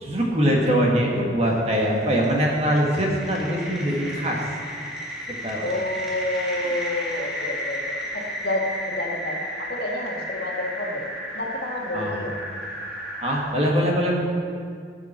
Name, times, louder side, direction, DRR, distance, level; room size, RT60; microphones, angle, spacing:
voice 1, 0.0-4.4 5.4-5.8 11.9-12.2 13.2-14.2, equal, 35° right, -1 dB, 1.9 m, -22 dB
sound 1, 1.5-13.4, equal, 5° right, 1.9 m, -33 dB
voice 2, 5.6-7.8 8.1-11.0 11.3-12.3, left 1 dB, 60° left, -1 dB, 1.9 m, -29 dB
19.0 x 7.6 x 4.5 m, 2.1 s
head